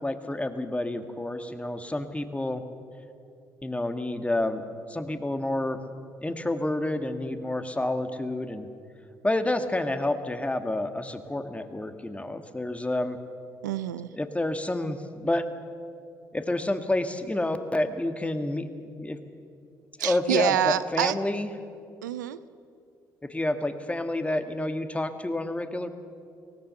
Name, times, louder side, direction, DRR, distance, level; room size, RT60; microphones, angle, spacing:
voice 1, 0.0-2.6 3.6-4.6 4.9-5.8 6.2-8.7 9.2-13.2 14.1-15.5 16.3-19.2 20.0-21.5 23.2-25.9, left 1 dB, 15° left, 8 dB, 1.9 m, -29 dB
voice 2, 13.6-14.1 20.0-21.2 22.0-22.4, right 12 dB, 90° right, 16 dB, 0.5 m, -27 dB
24.0 x 17.5 x 6.9 m, 2.5 s
hypercardioid pair, 50°, 10 cm